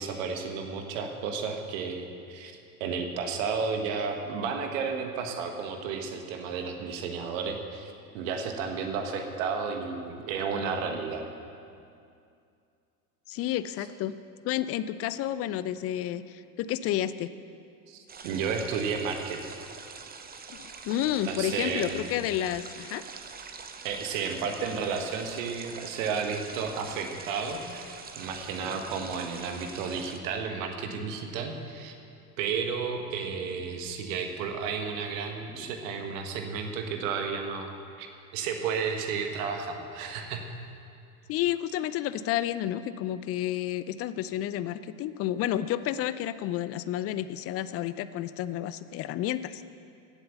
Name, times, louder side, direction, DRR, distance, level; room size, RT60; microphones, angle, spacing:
voice 1, 0.0-2.5 2.8-11.2 17.9-19.4 21.0-22.1 23.8-31.9 32.4-37.7 38.0-40.5, right 5 dB, 60° right, 4 dB, 1.6 m, -32 dB
voice 2, 13.3-14.2 14.4-17.3 20.5-23.0 41.3-49.6, left 12 dB, 30° left, 14 dB, 0.5 m, -30 dB
sound 1, 18.1-30.2, right 5 dB, 20° right, 0.9 m, -44 dB
sound 2, 24.1-24.8 26.3-27.0 28.4-29.2 30.7-31.4 33.1-33.8 35.3-36.1, left 1 dB, 15° left, 3.6 m, -52 dB
16.0 x 7.9 x 6.8 m, 2.5 s
figure-of-eight pair, 70°, 46 cm